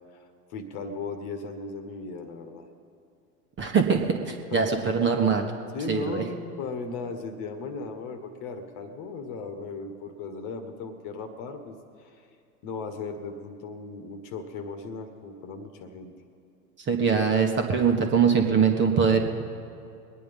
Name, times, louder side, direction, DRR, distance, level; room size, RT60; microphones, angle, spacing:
voice 1, 0.1-2.7 4.5-5.0 5.7-12.3 12.6-16.1, left 4 dB, 40° left, 7 dB, 1.5 m, -37 dB
voice 2, 3.6-5.5 5.9-6.2 16.9-19.2, right 6 dB, 25° right, 3 dB, 1.4 m, -22 dB
21.5 x 9.3 x 5.3 m, 2.5 s
hypercardioid pair, 100°, 45 cm